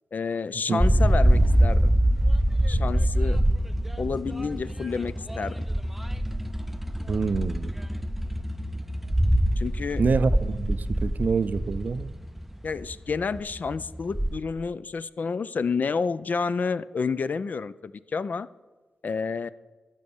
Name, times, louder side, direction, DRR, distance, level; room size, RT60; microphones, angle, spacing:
voice 1, 0.1-1.9 2.7-3.4 4.0-5.7 9.6-10.0 12.6-18.5 19.0-19.5, left 5 dB, 55° left, 15 dB, 0.4 m, -29 dB
sound 1, 0.8-14.3, right 1 dB, 5° right, 0.5 m, -24 dB
voice 2, 7.1-7.7 10.0-12.1, right 4 dB, 55° right, 15 dB, 0.5 m, -26 dB
12.5 x 5.3 x 7.1 m, 1.3 s
cardioid pair, 50°, 3 cm